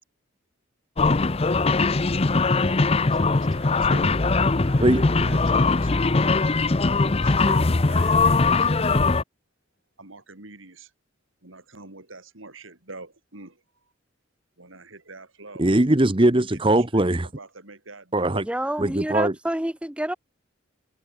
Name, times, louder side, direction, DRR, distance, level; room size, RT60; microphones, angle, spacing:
sound 1, 1.0-9.2, left 3 dB, 30° left, 0.7 m, -21 dB
voice 1, 3.1-4.1 4.6-6.2 7.0-9.1 10.0-10.9 11.4-13.5 14.6-15.6 16.8-17.1 17.3-18.4, right 3 dB, 80° right, 4.2 m, -44 dB
voice 2, 4.8-5.4 15.6-17.3 18.1-18.4 18.8-19.3, right 1 dB, 25° right, 1.1 m, -20 dB
voice 3, 18.5-20.1, right 1 dB, 5° right, 0.6 m, -28 dB
head